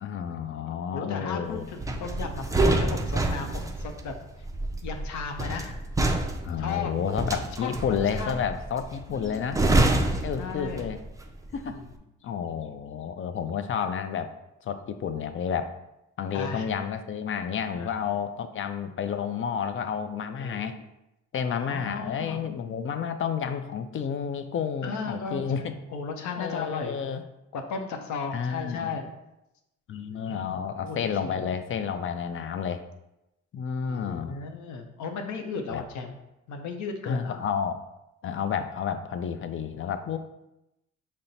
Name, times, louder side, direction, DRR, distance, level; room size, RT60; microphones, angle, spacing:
voice 1, 0.0-1.7 6.4-9.6 10.2-11.0 11.5-11.8 12.2-14.3 14.6-15.7 16.2-20.8 21.3-25.7 26.4-27.2 28.3-29.0 29.9-32.8 33.5-34.4 35.7-35.8 37.1-37.8 38.2-40.2, left 7 dB, 45° left, 9 dB, 0.4 m, -30 dB
voice 2, 0.9-4.1 4.8-5.8 6.6-7.0 7.3-8.4 9.1-9.6 10.4-10.8 11.7-11.8 16.3-16.7 17.7-18.0 20.4-20.8 21.5-22.5 24.8-27.0 27.5-29.1 30.1-31.5 33.9-36.2 36.5-37.4, left 5 dB, 70° left, 5 dB, 0.7 m, -36 dB
sound 1, 1.8-11.1 11.4-11.7, right 2 dB, 10° right, 0.4 m, -27 dB
5.6 x 2.1 x 4.0 m, 0.90 s
cardioid pair, 90°, 30 cm